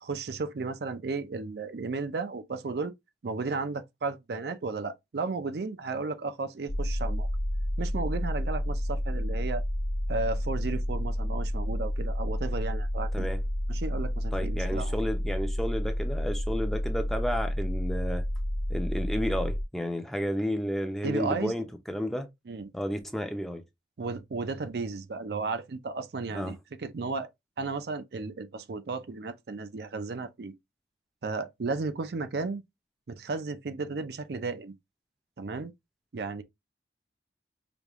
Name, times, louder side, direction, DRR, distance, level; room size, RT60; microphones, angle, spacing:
voice 1, 0.0-2.9 3.2-7.3 7.8-9.6 10.1-13.3 13.7-14.9 21.0-21.5 22.5-22.7 24.0-27.3 27.6-30.5 31.2-32.6 33.1-34.7 35.4-35.7 36.1-36.4, right 4 dB, 65° right, 0.5 m, -34 dB
sound 1, 6.7-19.6, equal, 80° left, 0.7 m, -30 dB
voice 2, 14.3-18.2 18.7-22.3 22.7-23.6 26.3-26.5, equal, ahead, 0.5 m, -32 dB
5.1 x 2.3 x 3.0 m
head